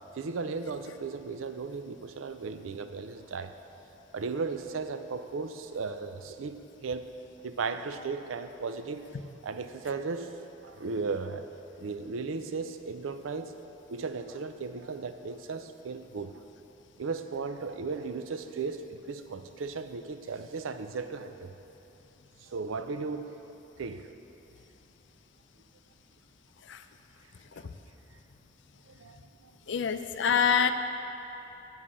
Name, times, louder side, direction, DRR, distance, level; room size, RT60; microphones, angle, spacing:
voice 1, 0.2-3.5 4.1-7.1 7.4-9.0 9.4-11.5 11.8-13.5 13.9-16.3 17.0-21.5 22.5-23.3 23.8-24.0 29.0-29.2 29.7-30.0, right 4 dB, 85° right, 9 dB, 0.5 m, -36 dB
voice 2, 29.7-30.7, left 7 dB, 65° left, 9 dB, 0.5 m, -25 dB
8.5 x 5.5 x 7.4 m, 3.0 s
head